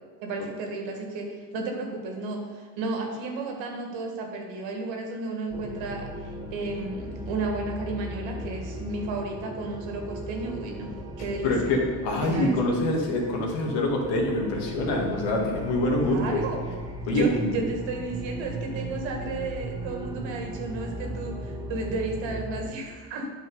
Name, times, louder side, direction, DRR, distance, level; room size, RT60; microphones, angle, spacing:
voice 1, 0.2-11.5 12.2-12.5 15.9-16.6 17.1-23.3, right 3 dB, 70° right, 2 dB, 2.1 m, -33 dB
sound 1, 5.5-22.7, right 1 dB, 10° right, 1.0 m, -37 dB
voice 2, 11.4-16.4 17.1-17.5, left 2 dB, 70° left, 0 dB, 2.1 m, -25 dB
8.8 x 5.3 x 5.6 m, 1.5 s
supercardioid pair, 85°, 46 cm